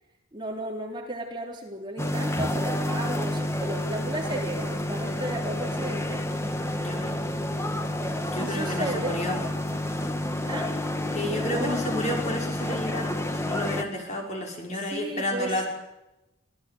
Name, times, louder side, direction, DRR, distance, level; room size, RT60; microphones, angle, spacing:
voice 1, 0.3-6.2 8.4-9.2 10.5-10.8 11.4-11.8 14.7-15.7, right 1 dB, 25° right, 1 dB, 3.8 m, -34 dB
sound 1, 2.0-13.8, left 1 dB, 15° left, 1.7 m, -29 dB
voice 2, 6.7-7.1 8.2-9.4 11.1-15.7, left 1 dB, 35° left, 1 dB, 5.9 m, -31 dB
25.0 x 16.5 x 8.6 m, 0.94 s
head